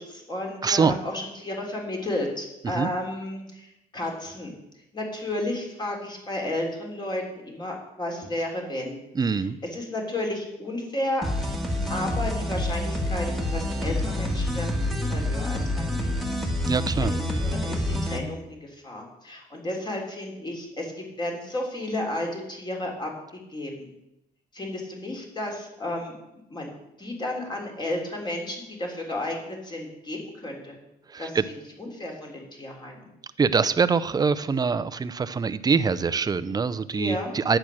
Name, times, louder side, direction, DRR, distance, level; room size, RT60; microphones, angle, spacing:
voice 1, 0.0-4.6 4.9-9.0 9.3-11.3 11.9-13.3 13.5-16.5 17.1-23.1 23.5-23.9 24.5-26.1 26.5-26.7 27.0-30.8 31.2-33.0 36.9-37.3, left 1 dB, 25° left, 1 dB, 3.5 m, -33 dB
voice 2, 0.6-0.9 2.6-2.9 9.2-9.6 16.7-17.1 31.1-31.4 33.4-37.6, right 5 dB, 25° right, 14 dB, 0.6 m, -24 dB
sound 1, 11.2-18.2, left 1 dB, ahead, 1.8 m, -27 dB
10.5 x 8.8 x 6.3 m, 0.87 s
cardioid pair, 110°, 17 cm